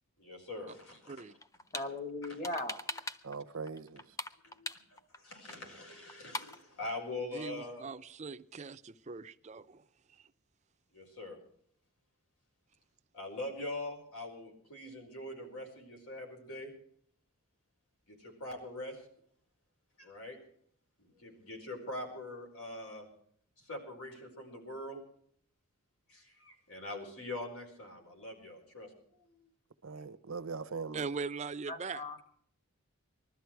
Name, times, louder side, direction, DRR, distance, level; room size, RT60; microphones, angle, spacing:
voice 1, 0.2-1.1 4.4-7.8 10.9-11.4 13.1-16.7 18.1-19.0 20.0-20.4 21.0-23.1 23.6-25.0 26.1-29.5 30.4-30.5, left 2 dB, 85° left, 4.8 m, -43 dB
sound 1, 1.4-1.9 2.2-3.4 3.7-5.2 5.5-5.6 5.8-5.9 6.1-6.6, left 2 dB, 15° left, 0.5 m, -41 dB
voice 2, 1.7-2.8 31.7-32.2, left 2 dB, 30° left, 1.3 m, -38 dB
voice 3, 3.2-4.0 29.8-31.0, right 4 dB, 65° right, 0.8 m, -41 dB
voice 4, 7.3-9.8 10.1-10.3 30.9-32.0, right 4 dB, 30° right, 0.5 m, -41 dB
20.5 x 13.0 x 4.7 m
head